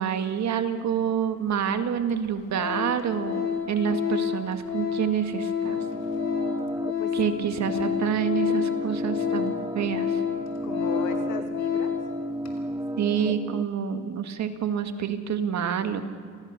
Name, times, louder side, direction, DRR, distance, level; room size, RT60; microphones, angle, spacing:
voice 1, 0.0-5.8 7.1-10.2 13.0-16.0, right 8 dB, 65° right, 8 dB, 2.0 m, -27 dB
Organ, 1.5-1.6 2.1-2.3 2.5-12.1 12.4-12.6, left 8 dB, 55° left, 4.6 m, -29 dB
voice 2, 5.6-6.4 7.0-7.2 10.6-11.9, left 7 dB, 90° left, 5 dB, 2.8 m, -38 dB
sound 1, 5.6-13.6, right 1 dB, 10° right, 0.7 m, -34 dB
29.0 x 19.5 x 6.8 m, 2.2 s
cardioid pair, 90°, 30 cm